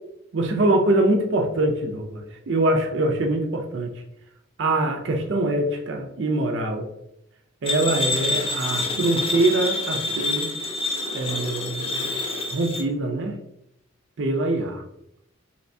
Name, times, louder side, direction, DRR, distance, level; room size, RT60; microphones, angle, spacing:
voice 1, 0.3-4.0 4.6-6.9 7.6-10.5 11.1-12.1 12.5-13.3 14.2-14.8, right 2 dB, 65° right, 3 dB, 0.5 m, -23 dB
sound 1, 7.7-12.8, left 2 dB, 30° left, 0.5 m, -27 dB
3.3 x 2.7 x 2.6 m, 0.77 s
head